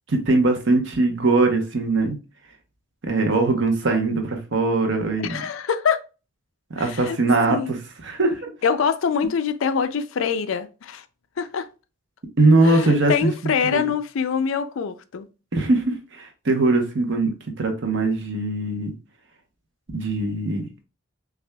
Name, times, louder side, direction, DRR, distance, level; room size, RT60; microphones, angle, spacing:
voice 1, 0.1-2.2 3.0-5.4 6.7-7.8 8.0-8.5 12.4-13.3 13.7-13.8 15.5-17.3 17.6-18.9 19.9-20.6, right 2 dB, 60° right, 0.8 m, -21 dB
voice 2, 5.2-6.0 6.8-7.2 7.5-7.7 8.6-11.0 11.4-11.7 12.6-15.3, left 6 dB, 65° left, 0.4 m, -24 dB
5.9 x 2.4 x 2.2 m
head